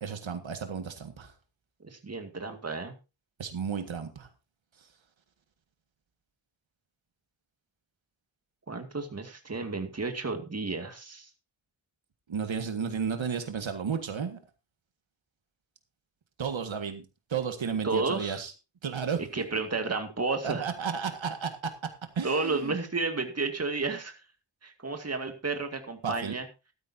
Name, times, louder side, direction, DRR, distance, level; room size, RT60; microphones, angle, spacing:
voice 1, 0.0-1.3 3.4-4.3 12.3-14.4 16.4-17.0 17.3-18.5 18.8-19.2 20.4-21.7 22.2-22.8 26.0-26.4, right 6 dB, 80° right, 6 dB, 1.8 m, -33 dB
voice 2, 1.8-2.9 8.7-11.3 17.8-18.4 19.3-20.7 22.2-24.2 24.6-26.5, right 3 dB, 35° right, 5 dB, 2.2 m, -32 dB
14.5 x 13.0 x 2.8 m, 0.29 s
wide cardioid pair, 130°, 46 cm